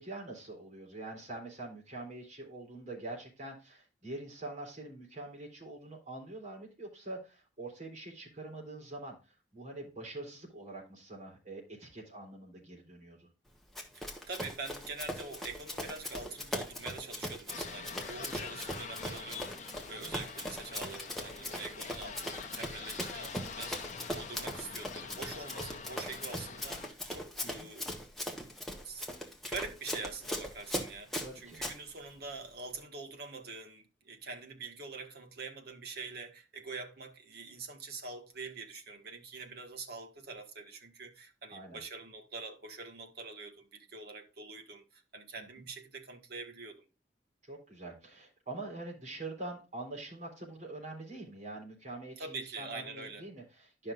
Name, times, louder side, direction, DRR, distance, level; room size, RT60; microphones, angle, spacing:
voice 1, 0.0-9.2 9.5-13.3 19.9-20.2 27.4-27.7 31.2-31.6 41.5-41.8 45.4-45.7 47.4-53.9, right 2 dB, 40° right, 3.8 m, -44 dB
Run, 13.8-31.8, equal, ahead, 1.3 m, -40 dB
voice 2, 13.9-27.9 28.8-29.1 29.5-46.9 52.2-53.3, right 3 dB, 60° right, 1.5 m, -45 dB
sound 1, 17.5-26.9, left 5 dB, 40° left, 0.7 m, -45 dB
11.5 x 5.7 x 2.5 m
head